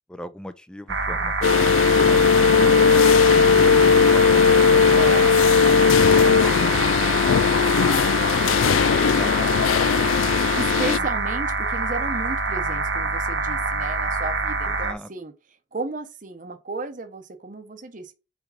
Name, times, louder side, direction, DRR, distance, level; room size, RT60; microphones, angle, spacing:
voice 1, 0.1-2.7 3.3-5.2 8.3-10.2 11.0-11.1 14.6-15.1, left 1 dB, 5° left, 0.5 m, -38 dB
sound 1, 0.9-14.9, right 3 dB, 75° right, 1.1 m, -26 dB
sound 2, 1.4-11.0, left 6 dB, 90° left, 0.3 m, -18 dB
voice 2, 4.9-5.2 10.5-15.3 15.7-18.1, right 3 dB, 40° right, 0.8 m, -33 dB
4.9 x 4.5 x 5.2 m
head